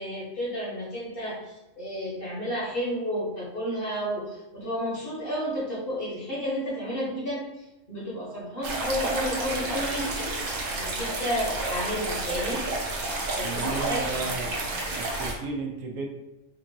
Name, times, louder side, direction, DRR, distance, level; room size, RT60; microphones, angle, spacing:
voice 1, 0.0-10.4 10.7-12.6 13.4-14.1, equal, 45° left, -6 dB, 1.5 m, -31 dB
sound 1, 8.6-15.3, right 2 dB, 50° right, 0.8 m, -30 dB
voice 2, 13.4-14.5 14.9-16.1, right 4 dB, 85° right, 2 dB, 1.1 m, -33 dB
4.3 x 2.5 x 2.9 m, 1.0 s
omnidirectional pair, 1.3 m